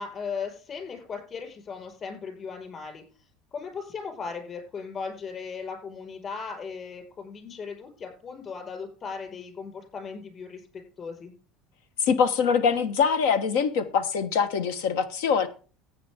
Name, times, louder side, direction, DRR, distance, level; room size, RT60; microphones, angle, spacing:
voice 1, 0.0-3.0 3.5-11.3, left 5 dB, 30° left, 4.9 m, -37 dB
voice 2, 12.0-15.5, left 6 dB, 90° left, 1.3 m, -23 dB
15.0 x 8.6 x 3.6 m
cardioid pair, 150°, 0 cm